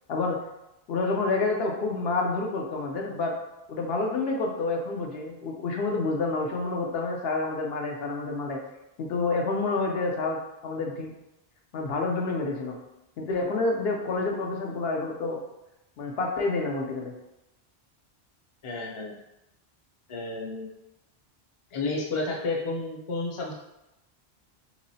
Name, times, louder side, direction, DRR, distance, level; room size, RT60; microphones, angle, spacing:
voice 1, 0.1-0.4 0.9-3.3 3.7-8.6 9.0-11.1 11.7-12.8 13.2-15.4 16.0-17.1, left 3 dB, 75° left, 1 dB, 0.8 m, -28 dB
voice 2, 18.6-19.1 20.1-20.7 21.7-23.5, left 3 dB, 35° left, -1 dB, 0.6 m, -31 dB
3.7 x 3.0 x 2.7 m, 0.91 s
omnidirectional pair, 1.1 m